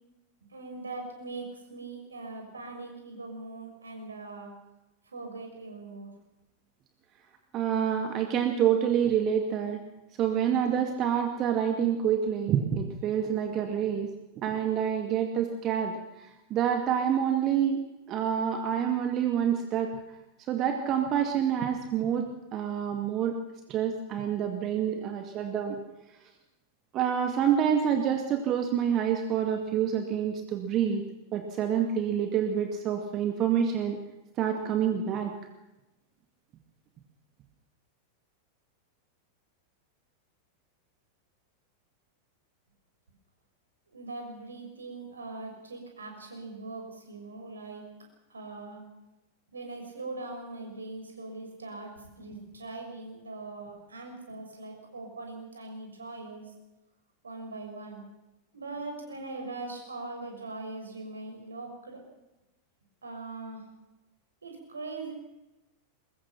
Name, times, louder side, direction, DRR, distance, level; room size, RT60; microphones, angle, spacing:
voice 1, 0.5-4.5 5.1-6.1 43.9-47.8 48.3-48.8 49.5-56.5 57.2-58.0 58.5-62.0 63.0-63.7 64.4-65.1, right 3 dB, 75° right, 3 dB, 6.2 m, -41 dB
voice 2, 7.5-9.8 10.2-14.1 14.4-17.8 18.1-20.0 20.5-23.4 23.7-25.8 26.9-31.0 31.3-34.0 34.4-35.3, right 8 dB, 35° right, 5 dB, 2.2 m, -27 dB
23.0 x 21.5 x 5.9 m, 0.99 s
figure-of-eight pair, 90°, 0 cm